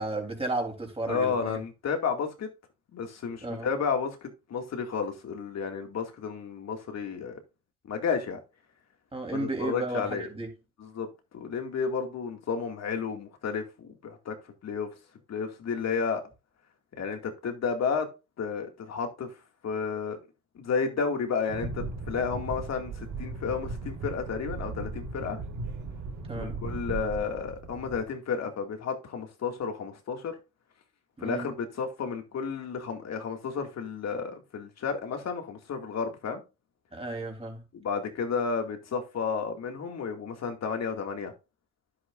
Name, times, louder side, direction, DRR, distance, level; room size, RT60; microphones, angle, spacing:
voice 1, 0.0-1.6 3.4-3.7 9.1-10.5 26.3-26.6 31.2-31.5 36.9-37.6, right 2 dB, 20° right, 3.5 m, -33 dB
voice 2, 1.1-2.5 2.9-7.4 7.8-8.4 9.3-10.3 10.8-11.1 11.3-14.4 14.6-14.9 15.3-16.2 17.0-18.1 18.4-19.3 19.6-20.2 20.6-25.4 26.3-30.4 31.2-36.4 37.7-41.3, left 5 dB, 60° left, 2.2 m, -32 dB
sound 1, 21.5-28.0, right 3 dB, 90° right, 1.7 m, -37 dB
10.5 x 7.8 x 2.5 m
cardioid pair, 90°, 30 cm